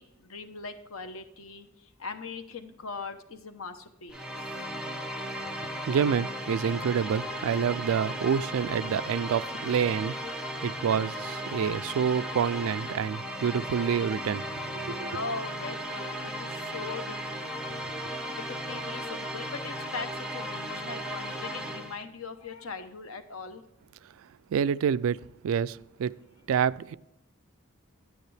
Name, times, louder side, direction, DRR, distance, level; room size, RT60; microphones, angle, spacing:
voice 1, 0.0-4.3 15.1-17.2 18.3-23.6, left 4 dB, 90° left, 1.0 m, -40 dB
sound 1, 4.1-22.0, equal, 5° right, 0.8 m, -36 dB
voice 2, 5.9-15.1 17.8-17.9 24.5-26.1 26.5-26.9, right 7 dB, 75° right, 0.3 m, -28 dB
9.7 x 9.3 x 3.3 m
head